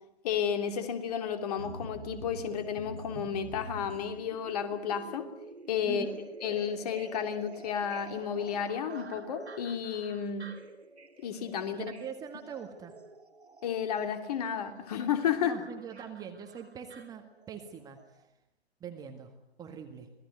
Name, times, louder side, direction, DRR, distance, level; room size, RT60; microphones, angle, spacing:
voice 1, 0.2-5.3 5.7-6.1 6.4-10.5 11.2-11.9 13.6-15.6, left 8 dB, 35° left, 7 dB, 2.9 m, -32 dB
sound 1, 1.6-17.7 18.0-18.1, right 2 dB, 85° right, 2.8 m, -47 dB
voice 2, 5.8-6.2 11.7-12.9 15.4-18.2 18.8-19.3 19.6-20.1, right 7 dB, 10° right, 5 dB, 1.7 m, -43 dB
26.0 x 19.0 x 9.4 m, 0.88 s
figure-of-eight pair, 130°, 32 cm